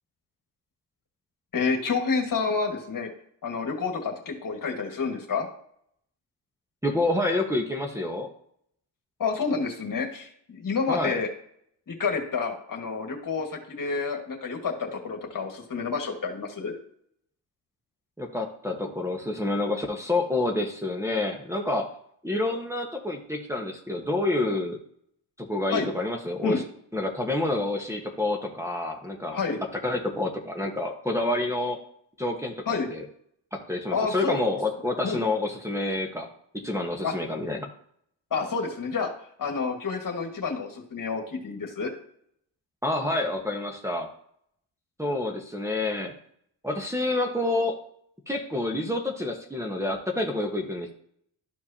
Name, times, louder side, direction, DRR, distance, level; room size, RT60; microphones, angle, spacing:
voice 1, 1.5-3.1 3.4-5.5 9.2-11.3 11.9-16.7 25.7-25.9 26.4-26.6 29.3-29.6 32.7-32.9 33.9-34.5 35.0-35.2 37.0-37.1 38.3-39.1 39.4-41.9, left 5 dB, 45° left, 2 dB, 1.9 m, -29 dB
voice 2, 6.8-8.3 10.9-11.2 18.2-21.9 22.2-24.8 25.4-26.6 26.9-29.4 29.8-31.8 32.2-32.6 32.9-33.0 33.5-36.3 36.5-37.7 42.8-44.1 45.0-46.1 46.6-47.8 48.3-50.9, left 2 dB, 5° right, -1 dB, 1.3 m, -28 dB
12.5 x 4.7 x 2.9 m, 0.66 s
supercardioid pair, 70°, 46 cm